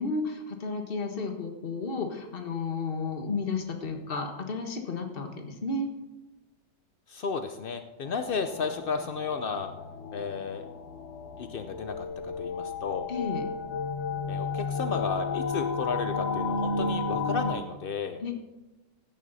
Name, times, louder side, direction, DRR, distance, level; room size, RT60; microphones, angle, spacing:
voice 1, 0.0-5.9 13.1-13.5 18.2-18.3, left 4 dB, 35° left, 4 dB, 1.5 m, -32 dB
voice 2, 7.1-9.7 10.1-10.6 11.4-13.1 14.3-18.2, left 5 dB, 85° left, 8 dB, 0.4 m, -33 dB
sound 1, 8.0-17.6, left 4 dB, 50° left, 1.1 m, -33 dB
16.0 x 9.5 x 4.1 m, 1.1 s
omnidirectional pair, 1.8 m